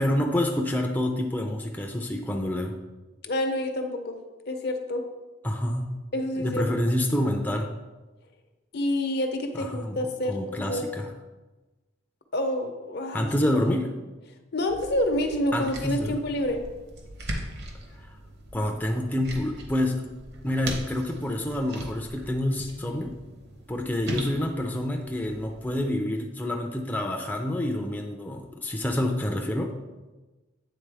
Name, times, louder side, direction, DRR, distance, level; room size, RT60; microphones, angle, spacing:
voice 1, 0.0-2.7 5.4-5.9 6.4-7.7 9.5-10.0 10.3-11.1 13.1-13.9 15.5-16.2 18.0-18.1 18.5-20.0 20.4-23.1 23.7-29.7, left 1 dB, 10° left, 1 dB, 0.4 m, -27 dB
voice 2, 3.2-4.2 4.5-5.0 6.1-6.6 8.7-10.9 12.3-13.3 14.5-16.6, left 1 dB, 60° left, 5 dB, 0.7 m, -28 dB
sound 1, 14.7-25.9, right 1 dB, 60° right, 1.0 m, -40 dB
8.5 x 3.8 x 3.4 m, 1.2 s
head